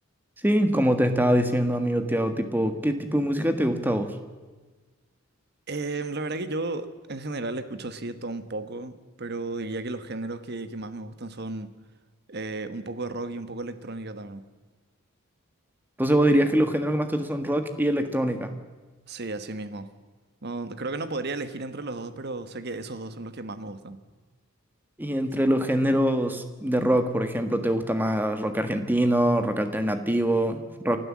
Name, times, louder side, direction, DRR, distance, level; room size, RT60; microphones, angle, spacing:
voice 1, 0.4-4.2 16.0-18.5 25.0-31.0, right 1 dB, 10° right, 1.5 m, -24 dB
voice 2, 5.7-11.7 12.3-14.4 19.1-19.9 20.4-24.0, right 2 dB, 50° right, 1.3 m, -34 dB
29.0 x 12.5 x 7.5 m
head